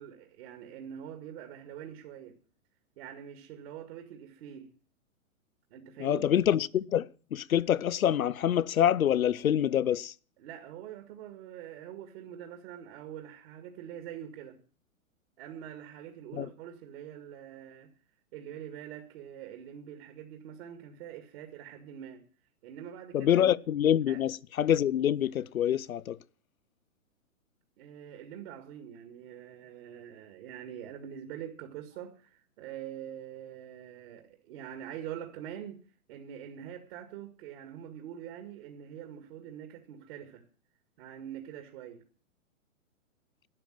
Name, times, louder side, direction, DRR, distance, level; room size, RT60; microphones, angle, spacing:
voice 1, 0.0-2.4 3.0-4.7 5.7-6.3 10.4-14.6 15.4-17.9 18.3-22.2 22.6-23.5 24.1-24.2 27.8-35.8 36.1-40.4 41.0-42.0, right 10 dB, 45° right, 2.1 m, -44 dB
voice 2, 6.0-10.1 16.3-16.5 23.1-26.2, left 10 dB, 80° left, 0.8 m, -26 dB
12.0 x 10.5 x 7.5 m
hypercardioid pair, 130°, 42 cm